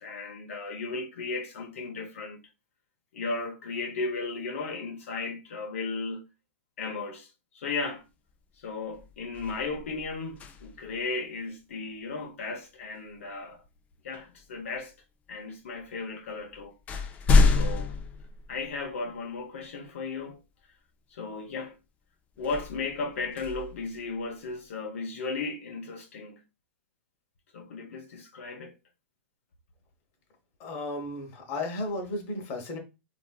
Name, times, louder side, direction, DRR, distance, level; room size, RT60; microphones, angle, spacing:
voice 1, 0.0-2.4 3.1-6.2 6.8-8.0 8.6-13.6 14.0-14.9 15.3-16.7 17.4-18.0 18.5-20.4 21.1-21.7 22.4-26.4 27.5-28.7, left 3 dB, 85° left, 0.7 m, -35 dB
sound 1, 8.3-8.5 8.9-11.0 13.1-13.3 14.1-14.9 15.8-15.9 16.3-19.1 19.7-19.8 22.4-24.5, left 3 dB, 20° left, 0.3 m, -28 dB
voice 2, 30.6-32.8, left 2 dB, 40° left, 0.9 m, -34 dB
3.2 x 2.6 x 2.3 m
supercardioid pair, 140°, 7 cm